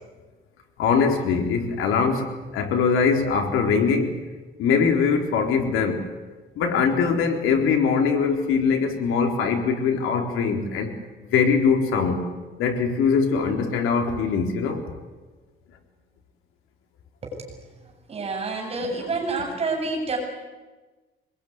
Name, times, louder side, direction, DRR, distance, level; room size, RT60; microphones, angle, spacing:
voice 1, 0.8-4.2 4.6-6.0 6.6-10.9 11.2-12.2 12.6-14.8 18.8-18.9, left 5 dB, 90° left, 3 dB, 4.1 m, -22 dB
voice 2, 18.1-20.2, right 3 dB, 30° right, 1 dB, 7.7 m, -28 dB
25.0 x 21.0 x 9.6 m, 1.2 s
cardioid pair, 175°, 21 cm